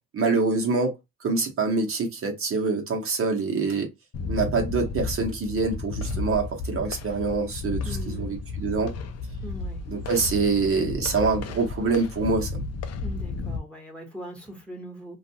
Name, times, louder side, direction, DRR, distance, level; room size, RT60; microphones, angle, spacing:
voice 1, 0.1-0.9 1.2-3.9 4.3-8.9 9.9-12.6, right 4 dB, 45° right, 0.9 m, -25 dB
sound 1, 4.1-13.6, left 4 dB, 55° left, 0.5 m, -33 dB
voice 2, 7.8-8.3 9.4-9.8 13.0-15.2, right 1 dB, 5° left, 1.1 m, -40 dB
2.4 x 2.3 x 2.7 m
cardioid pair, 90°, 30 cm